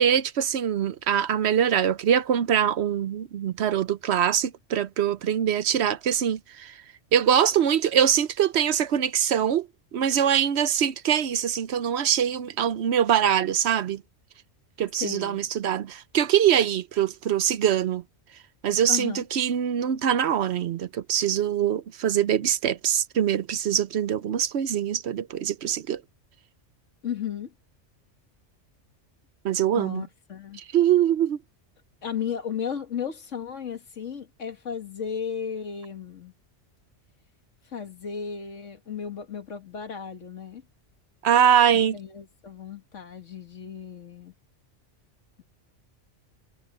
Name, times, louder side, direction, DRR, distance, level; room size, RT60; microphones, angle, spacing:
voice 1, 0.0-6.7 7.1-9.7 9.9-14.0 14.8-18.0 18.6-26.0 29.4-30.0 30.7-31.4 41.2-42.0, right 9 dB, 65° right, 0.9 m, -23 dB
voice 2, 15.0-15.4 18.9-19.2 27.0-27.5 29.7-30.6 32.0-36.3 37.7-40.6 41.7-44.3, left 7 dB, 90° left, 2.1 m, -34 dB
omnidirectional pair, 1.2 m